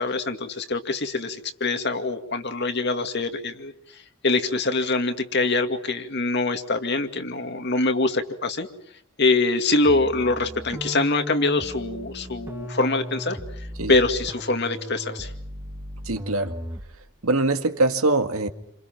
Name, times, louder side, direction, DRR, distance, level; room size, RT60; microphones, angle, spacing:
voice 1, 0.0-8.7 9.2-15.3, left 3 dB, 50° left, 2.2 m, -24 dB
sound 1, 9.9-17.0, equal, 10° right, 1.7 m, -36 dB
voice 2, 16.1-16.6 17.2-18.5, right 2 dB, 75° right, 2.0 m, -23 dB
29.5 x 27.5 x 6.0 m
head